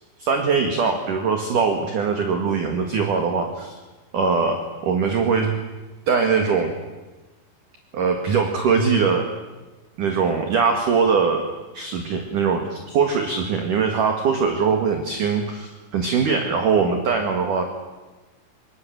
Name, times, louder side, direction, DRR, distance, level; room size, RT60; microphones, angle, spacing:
voice 1, 0.2-3.8 4.1-5.5 6.1-6.7 7.9-9.2 10.0-11.5 11.7-17.6, right 5 dB, 55° right, 4 dB, 2.9 m, -21 dB
26.0 x 24.5 x 7.6 m, 1.2 s
omnidirectional pair, 5.6 m